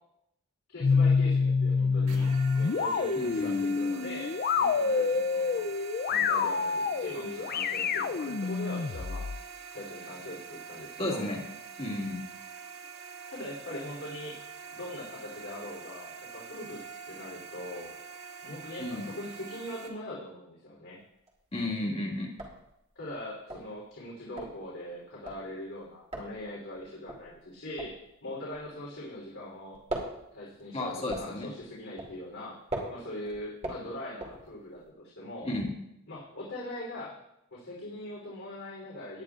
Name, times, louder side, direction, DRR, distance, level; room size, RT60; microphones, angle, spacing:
voice 1, 0.7-5.7 6.0-9.3 9.7-11.3 13.3-14.4 14.7-17.9 18.4-21.0 22.9-29.8 30.3-32.6 32.9-35.5 36.1-37.2 37.5-39.2, left 1 dB, 70° left, -7 dB, 3.4 m, -41 dB
sound 1, 0.8-9.4, left 5 dB, 45° left, 0.4 m, -27 dB
sound 2, 2.1-19.9, right 6 dB, 75° right, 1.5 m, -45 dB
voice 2, 3.2-3.7 11.0-11.4 11.8-12.2 18.8-19.1 21.5-22.3 30.7-31.5 35.4-35.7, left 1 dB, 25° left, -1 dB, 2.2 m, -33 dB
sound 3, 21.0-21.5 21.9-22.0 22.2-29.3 29.6-34.9, right 1 dB, 30° right, 2.4 m, -40 dB
18.5 x 10.5 x 2.5 m, 0.83 s
head